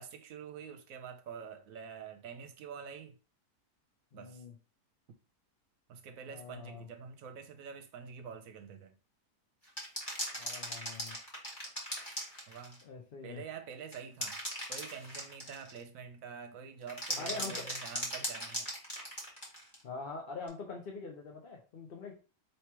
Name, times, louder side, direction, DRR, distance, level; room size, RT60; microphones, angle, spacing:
voice 1, 0.0-3.2 4.1-4.4 5.9-8.9 12.5-12.8 13.2-14.4 14.7-18.7, right 6 dB, 70° right, 1.0 m, -46 dB
voice 2, 4.1-4.6 6.3-6.9 10.4-11.2 12.8-13.5 17.2-17.7 19.8-22.1, left 4 dB, 50° left, 0.7 m, -44 dB
sound 1, 9.7-12.8 13.9-15.8 16.9-19.8 20.5-20.6, equal, 15° left, 1.3 m, -38 dB
3.1 x 2.9 x 4.5 m
omnidirectional pair, 1.6 m